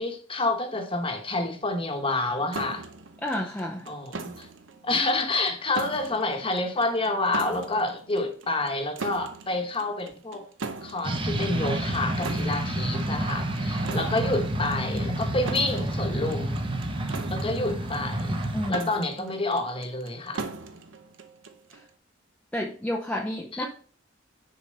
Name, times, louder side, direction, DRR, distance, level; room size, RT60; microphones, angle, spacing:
voice 1, 0.0-2.9 3.9-4.5 4.8-10.4 10.8-16.6 17.3-20.5 23.5-23.7, left 2 dB, 25° left, 1.1 m, -28 dB
sound 1, 2.5-21.9, right 3 dB, 70° right, 0.7 m, -40 dB
voice 2, 3.2-3.9 18.5-18.9 21.7-21.8 22.5-23.7, left 1 dB, 5° left, 0.6 m, -30 dB
sound 2, 11.0-18.7, right 1 dB, 25° right, 0.9 m, -29 dB
6.7 x 4.4 x 5.3 m
head